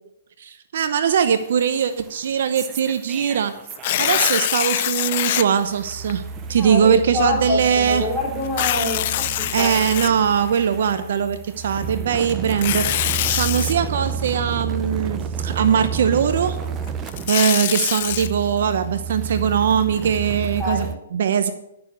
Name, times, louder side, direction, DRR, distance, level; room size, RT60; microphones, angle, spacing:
voice 1, 0.4-3.5 4.0-6.2 6.5-8.0 9.5-12.8 13.3-16.6 17.3-21.5, right 7 dB, 65° right, 10 dB, 0.8 m, -21 dB
sound 1, 1.1-4.3 4.6-20.9, right 6 dB, 20° right, 0.8 m, -31 dB
Tearing, 3.7-5.4 6.1-6.2 8.4-10.6 12.4-13.7 16.9-18.3, left 13 dB, 45° left, 0.5 m, -23 dB
voice 2, 6.6-10.0 20.6-20.9, left 2 dB, 5° left, -5 dB, 3.6 m, -26 dB
11.0 x 7.0 x 6.6 m, 0.80 s
hypercardioid pair, 140°, 0 cm